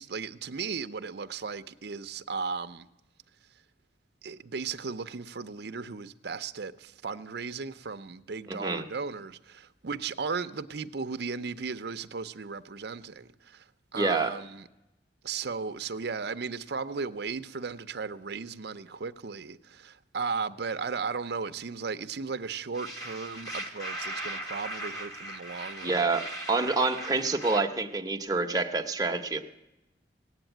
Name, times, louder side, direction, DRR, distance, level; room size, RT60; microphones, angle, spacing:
voice 1, 0.0-2.9 4.2-13.7 13.9-14.7 15.2-26.0, right 5 dB, 60° right, 0.6 m, -36 dB
voice 2, 8.5-8.9 13.9-14.3 25.8-29.4, right 3 dB, 20° right, 0.9 m, -27 dB
sound 1, 22.7-27.6, right 1 dB, 20° left, 1.6 m, -39 dB
18.0 x 8.0 x 9.1 m
head